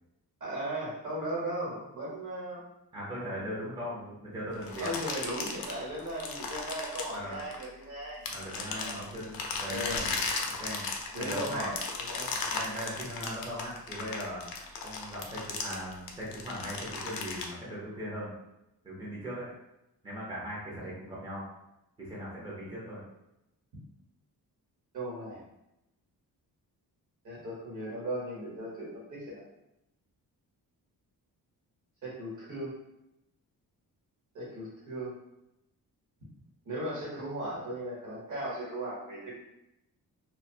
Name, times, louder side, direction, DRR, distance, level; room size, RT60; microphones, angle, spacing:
voice 1, 0.4-2.6 4.8-8.2 8.5-9.0 9.7-10.1 11.1-12.5 13.2-13.3 24.9-25.4 27.2-29.4 32.0-32.7 34.3-35.2 36.6-39.4, right 1 dB, 50° right, -5 dB, 1.1 m, -37 dB
voice 2, 2.9-5.0 7.1-7.4 8.3-10.0 10.6-10.9 11.2-11.7 12.5-14.5 14.8-18.3 18.8-19.5 20.0-21.5 22.0-23.0, equal, 10° right, -8 dB, 0.6 m, -39 dB
sound 1, 4.6-7.8 8.3-17.4, left 4 dB, 65° left, 0.5 m, -36 dB
2.4 x 2.2 x 2.6 m, 0.88 s
wide cardioid pair, 170°, 38 cm